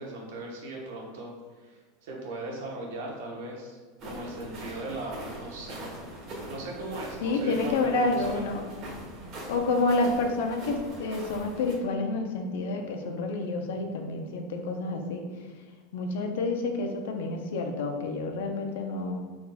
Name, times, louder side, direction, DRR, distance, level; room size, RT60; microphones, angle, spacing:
voice 1, 0.0-3.8 4.0-5.8 6.5-8.4, right 2 dB, 75° right, -1 dB, 0.9 m, -38 dB
sound 1, 4.0-11.7, right 1 dB, 40° right, 1.4 m, -42 dB
voice 2, 7.2-8.6 9.5-15.2 15.9-19.2, left 3 dB, 80° left, 4 dB, 0.6 m, -29 dB
4.0 x 3.5 x 2.3 m, 1.5 s
supercardioid pair, 150°, 0 cm